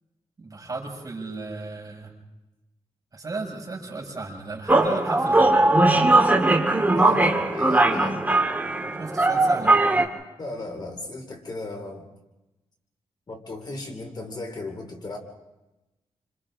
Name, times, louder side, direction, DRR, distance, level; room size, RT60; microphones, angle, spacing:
voice 1, 0.4-2.1 3.1-5.6 9.0-9.8, right 3 dB, 30° right, -2 dB, 6.2 m, -34 dB
sound 1, 4.7-10.1, right 2 dB, 15° right, 2.0 m, -19 dB
voice 2, 6.9-8.2 10.4-12.1 13.3-15.2, left 2 dB, 40° left, 3 dB, 2.8 m, -35 dB
28.5 x 26.5 x 3.8 m, 1.0 s
wide cardioid pair, 140°, 11 cm